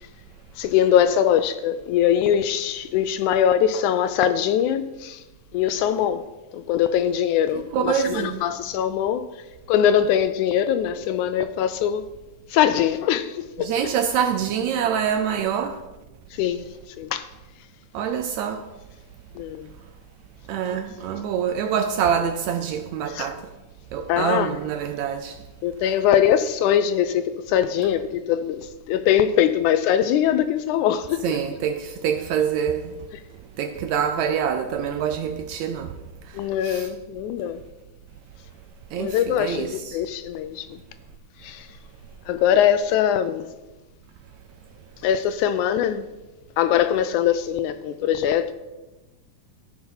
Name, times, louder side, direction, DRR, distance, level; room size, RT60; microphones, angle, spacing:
voice 1, 0.6-5.2 5.5-6.3 6.5-9.3 9.7-12.1 12.5-13.7 16.3-16.7 17.0-17.3 19.4-19.7 23.1-23.3 24.1-24.5 25.6-31.2 36.3-37.6 39.0-40.8 41.4-41.7 42.3-43.5 45.0-46.1 46.6-48.5, left 9 dB, 80° left, 1.8 m, -22 dB
voice 2, 7.7-8.4 13.6-15.8 17.9-18.7 20.5-23.5 23.9-25.4 31.2-35.9 36.2-36.9 38.9-40.0, right 8 dB, 80° right, 1.7 m, -26 dB
14.0 x 5.8 x 5.6 m
omnidirectional pair, 3.7 m